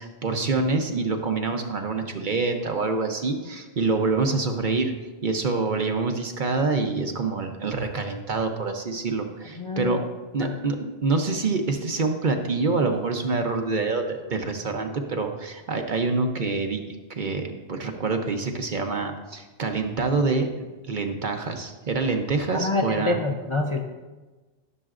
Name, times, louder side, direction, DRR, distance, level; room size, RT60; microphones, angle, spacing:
voice 1, 0.0-4.9 5.2-10.0 10.3-10.8 11.0-16.8 17.1-20.5 20.9-23.2, right 3 dB, 50° right, 4 dB, 0.9 m, -26 dB
voice 2, 9.6-10.1 10.4-10.6 22.5-23.8, left 3 dB, 35° left, 1 dB, 0.6 m, -27 dB
15.0 x 6.8 x 2.5 m, 1.2 s
omnidirectional pair, 1.1 m